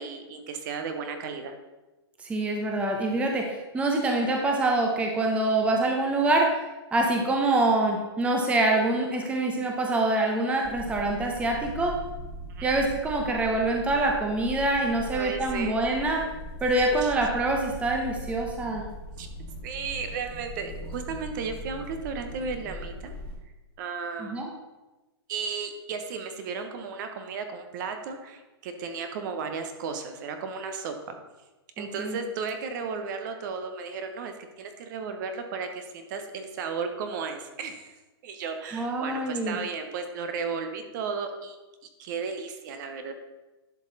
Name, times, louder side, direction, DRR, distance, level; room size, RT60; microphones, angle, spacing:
voice 1, 0.0-1.5 12.5-12.7 15.1-15.8 16.7-17.1 19.2-19.3 19.6-23.1 23.8-24.5 25.3-31.2 31.8-37.9 38.2-41.6 42.0-43.1, right 5 dB, 45° right, 7 dB, 1.0 m, -34 dB
voice 2, 2.2-6.6 6.9-11.9 12.6-16.2 16.6-18.8 24.2-24.5 31.8-32.2 38.7-39.6, right 2 dB, 10° right, 1 dB, 0.8 m, -25 dB
sound 1, 10.6-23.3, equal, 5° left, 1.7 m, -40 dB
11.0 x 5.3 x 4.1 m, 1.1 s
hypercardioid pair, 145°, 14 cm